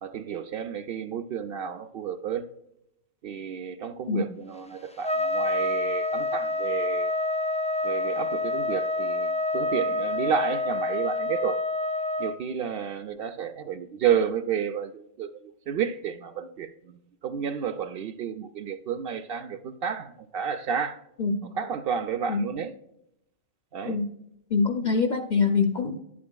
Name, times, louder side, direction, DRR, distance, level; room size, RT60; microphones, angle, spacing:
voice 1, 0.0-2.5 3.2-7.1 7.8-11.6 12.2-21.0 21.6-22.7 23.7-24.0, right 7 dB, 60° right, 10 dB, 0.7 m, -31 dB
Trumpet, 5.0-12.4, left 2 dB, 10° left, 0.4 m, -27 dB
voice 2, 24.5-26.0, left 4 dB, 45° left, 3 dB, 0.7 m, -24 dB
10.5 x 8.5 x 2.2 m, 0.80 s
omnidirectional pair, 1.2 m